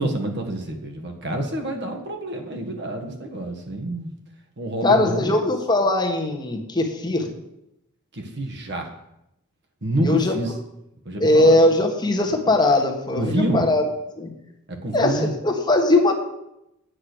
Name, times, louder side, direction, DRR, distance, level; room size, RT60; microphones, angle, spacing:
voice 1, 0.0-4.1 4.6-5.4 8.1-8.9 9.8-10.5 11.0-11.5 13.1-13.7 14.7-15.3, right 1 dB, 50° right, 2 dB, 1.6 m, -27 dB
voice 2, 4.8-7.3 10.0-10.4 11.2-13.8 14.2-14.3 14.9-16.2, left 2 dB, 20° left, 1 dB, 1.4 m, -20 dB
8.6 x 7.9 x 6.2 m, 0.86 s
head